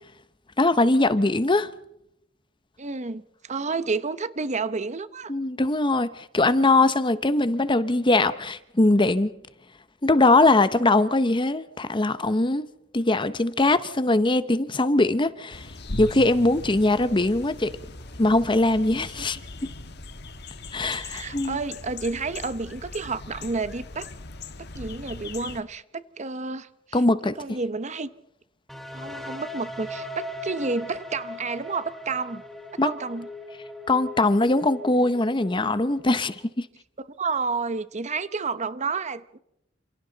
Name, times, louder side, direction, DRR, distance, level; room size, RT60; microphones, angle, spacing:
voice 1, 0.6-1.7 5.3-9.3 10.0-12.7 12.9-15.7 16.0-17.7 18.2-19.7 20.7-21.6 26.9-27.4 32.8-32.9 33.9-36.7, left 2 dB, 25° left, 0.8 m, -21 dB
voice 2, 2.8-5.3 19.2-19.3 20.8-24.1 24.7-27.0 27.4-28.1 28.9-32.4 32.8-33.3 37.2-39.4, right 4 dB, 35° right, 0.9 m, -30 dB
sound 1, 15.5-25.6, left 2 dB, 60° left, 1.5 m, -39 dB
sound 2, 28.7-36.4, left 1 dB, ahead, 3.0 m, -39 dB
29.0 x 27.5 x 4.0 m
head